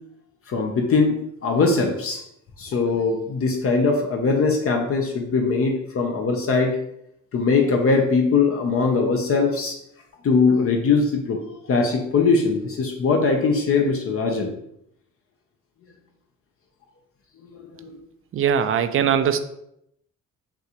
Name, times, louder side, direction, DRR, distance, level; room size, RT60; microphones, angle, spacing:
voice 1, 0.5-2.2 2.6-6.8 7.3-9.8 10.2-11.4 11.7-14.5 17.5-18.0, left 4 dB, 50° left, 2 dB, 0.7 m, -21 dB
voice 2, 18.3-19.4, right 8 dB, 45° right, 11 dB, 0.4 m, -20 dB
5.8 x 2.5 x 2.9 m, 0.78 s
cardioid pair, 90°, 30 cm